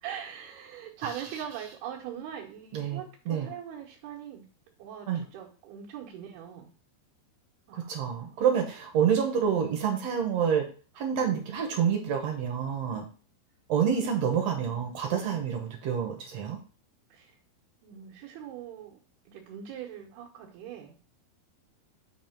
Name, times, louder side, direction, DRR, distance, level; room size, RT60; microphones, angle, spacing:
voice 1, 0.0-4.5 4.8-6.7 7.7-8.5 17.1-17.3 17.8-19.0 19.3-21.0, right 9 dB, 90° right, -5 dB, 3.0 m, -42 dB
voice 2, 7.7-10.6 10.9-13.1 13.7-16.6, right 7 dB, 75° right, 3 dB, 1.5 m, -28 dB
7.2 x 2.9 x 5.8 m, 0.38 s
omnidirectional pair, 4.3 m